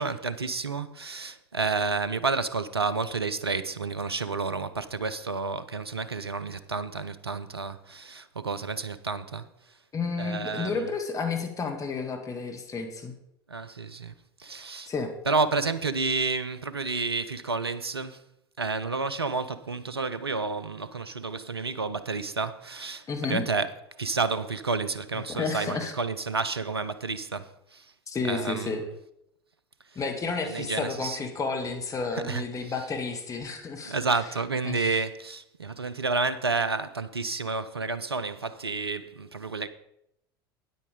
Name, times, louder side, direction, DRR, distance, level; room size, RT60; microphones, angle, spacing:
voice 1, 0.0-9.5 10.2-10.9 13.5-14.1 14.4-14.9 15.3-18.2 18.6-23.7 24.0-27.9 28.3-28.8 30.4-31.2 32.1-32.4 33.9-39.7, right 4 dB, 90° right, 0.5 m, -30 dB
voice 2, 9.9-13.1 14.8-15.1 23.1-23.4 25.3-26.0 28.1-28.8 30.0-34.0 34.6-35.0, left 4 dB, 25° left, 1.8 m, -31 dB
9.4 x 8.4 x 5.1 m
figure-of-eight pair, 75°, 13 cm